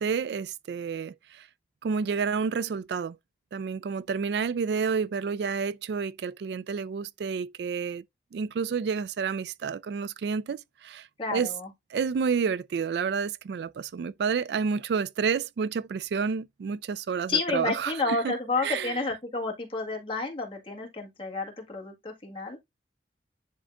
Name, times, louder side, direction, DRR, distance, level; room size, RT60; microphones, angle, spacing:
voice 1, 0.0-1.5 1.8-3.2 3.5-8.0 8.3-11.5 11.9-19.0, right 6 dB, 70° right, 0.3 m, -30 dB
voice 2, 11.2-11.7 17.3-22.6, left 3 dB, 30° left, 1.8 m, -30 dB
10.5 x 3.7 x 2.5 m
head